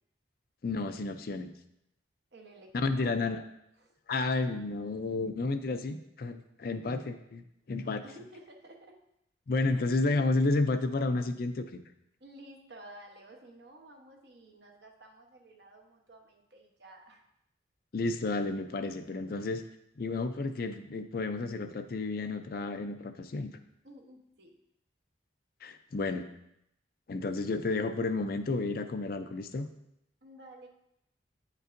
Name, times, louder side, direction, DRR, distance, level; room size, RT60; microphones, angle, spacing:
voice 1, 0.6-1.5 2.7-3.4 4.1-8.0 9.5-11.8 17.9-19.6 20.0-23.5 25.6-26.3 27.1-29.7, left 3 dB, 50° left, 9 dB, 0.4 m, -31 dB
voice 2, 2.3-3.1 3.8-3.9 8.0-9.0 9.5-9.8 12.2-17.2 23.8-24.6 30.2-30.7, right 1 dB, 60° right, 2 dB, 1.0 m, -53 dB
9.1 x 5.3 x 2.5 m, 0.80 s
head